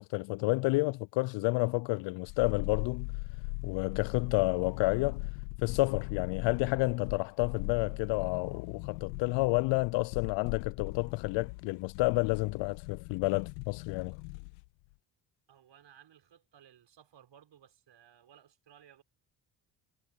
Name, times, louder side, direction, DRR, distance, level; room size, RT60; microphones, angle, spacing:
voice 1, 0.0-3.1 3.6-5.3 5.6-14.2, left 24 dB, 60° left, 0.5 m, -30 dB
sound 1, 2.3-14.7 14.9-15.0, left 25 dB, 85° left, 1.5 m, -40 dB
voice 2, 15.5-19.0, right 9 dB, 60° right, 6.2 m, -59 dB
hypercardioid pair, 55°, 50 cm